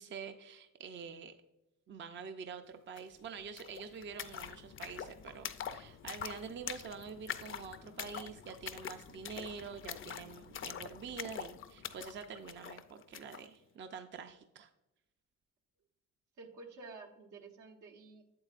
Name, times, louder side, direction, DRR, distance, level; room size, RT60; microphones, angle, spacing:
voice 1, 0.0-1.3 1.9-14.7, right 6 dB, 40° right, 8 dB, 0.5 m, -46 dB
sound 1, 3.0-3.1 3.3-13.5, left 8 dB, 45° left, 0.5 m, -45 dB
voice 2, 16.4-18.2, right 3 dB, 80° right, 2 dB, 1.3 m, -51 dB
7.9 x 7.6 x 2.5 m, 0.94 s
cardioid pair, 90°, 30 cm